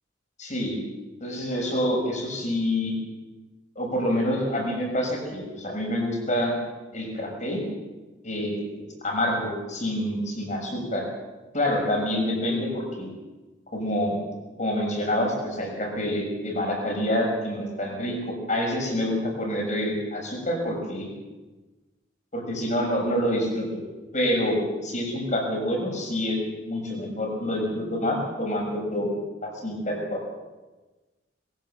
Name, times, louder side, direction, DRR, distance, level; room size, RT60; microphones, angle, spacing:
voice 1, 0.4-0.8 1.2-2.9 3.7-6.5 6.9-7.6 8.2-11.0 11.5-13.1 13.7-14.2 14.6-21.1 22.3-23.8 24.1-24.6 24.8-29.1 29.4-30.2, left 1 dB, 40° left, 0 dB, 6.7 m, -27 dB
22.5 x 15.5 x 7.5 m, 1.2 s
head